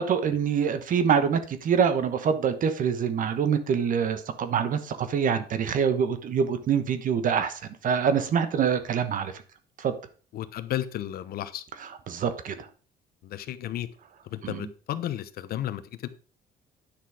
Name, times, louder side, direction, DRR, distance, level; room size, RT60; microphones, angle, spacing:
voice 1, 0.0-9.3 9.8-9.9 11.8-12.7 14.4-14.7, right 7 dB, 50° right, 1.2 m, -25 dB
voice 2, 10.3-11.6 13.2-13.9 14.2-16.1, left 12 dB, 65° left, 0.9 m, -33 dB
9.9 x 6.0 x 4.9 m
cardioid pair, 110°, 17 cm